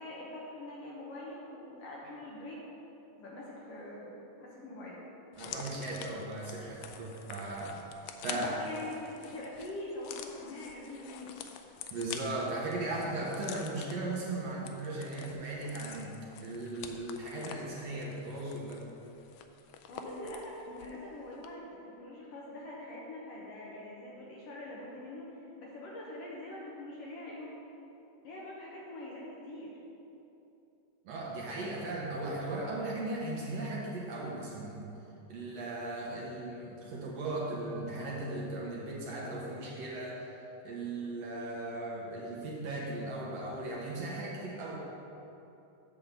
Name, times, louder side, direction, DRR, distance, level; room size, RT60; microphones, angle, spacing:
voice 1, 0.0-2.6 3.0-5.0 8.3-11.3 19.9-27.6 28.2-29.8, left 1 dB, 65° left, -4 dB, 1.7 m, -44 dB
sound 1, 5.3-21.0 21.3-21.5, left 8 dB, 85° left, 1.5 m, -47 dB
voice 2, 5.4-7.8 8.2-8.5 11.9-16.1 16.4-18.8 31.1-34.8 35.3-40.4 40.6-44.7, right 2 dB, 65° right, -4 dB, 2.0 m, -37 dB
8.7 x 3.7 x 6.8 m, 2.9 s
omnidirectional pair, 3.5 m